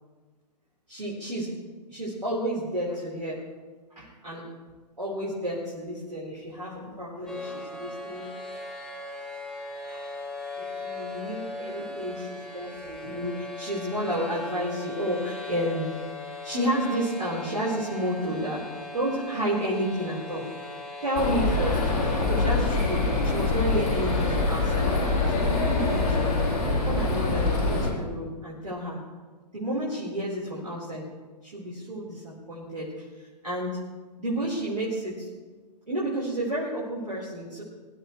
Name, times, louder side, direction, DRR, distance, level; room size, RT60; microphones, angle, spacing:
voice 1, 0.9-1.5 1.9-3.4 3.9-4.5 5.0-8.4 9.8-10.1 10.6-15.9 16.4-18.7 18.9-20.5 21.0-21.8 22.2-24.9 25.3-26.4 26.8-29.0 29.5-31.1 31.4-33.8 34.2-35.3 35.9-37.6, equal, 75° right, -6 dB, 4.5 m, -31 dB
sound 1, 7.3-26.7, left 3 dB, 5° left, 2.5 m, -39 dB
sound 2, 21.2-27.9, left 3 dB, 55° left, 3.9 m, -25 dB
23.5 x 13.5 x 3.3 m, 1.4 s
figure-of-eight pair, 115°, 21 cm